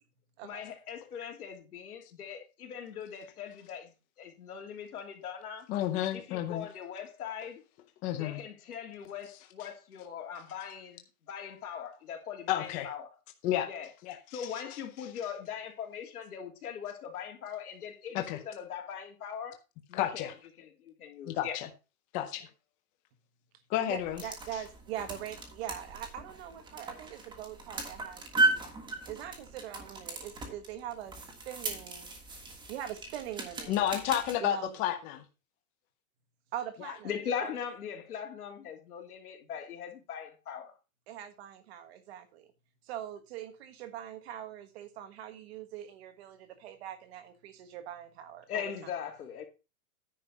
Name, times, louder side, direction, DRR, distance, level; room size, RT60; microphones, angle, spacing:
voice 1, 0.4-3.9 4.2-5.7 6.1-7.6 8.2-13.0 13.6-13.9 14.3-19.6 19.9-20.3 20.6-21.6 37.0-40.7 48.5-49.4, left 8 dB, 85° left, 3.1 m, -40 dB
voice 2, 5.7-6.7 8.0-8.4 9.6-9.7 12.5-12.9 13.4-13.7 14.0-14.8 18.1-18.4 19.9-20.3 21.2-21.7 22.1-22.5 23.7-24.2 33.7-35.2, left 12 dB, 20° left, 0.6 m, -31 dB
voice 3, 23.8-28.6 29.1-32.1 32.7-33.8 34.4-34.8 36.5-37.1 37.4-37.5 41.1-42.5 42.9-48.9, right 11 dB, 45° right, 1.4 m, -42 dB
sound 1, 23.9-34.4, right 2 dB, 10° right, 1.4 m, -36 dB
9.9 x 5.3 x 5.3 m
supercardioid pair, 160°, 44 cm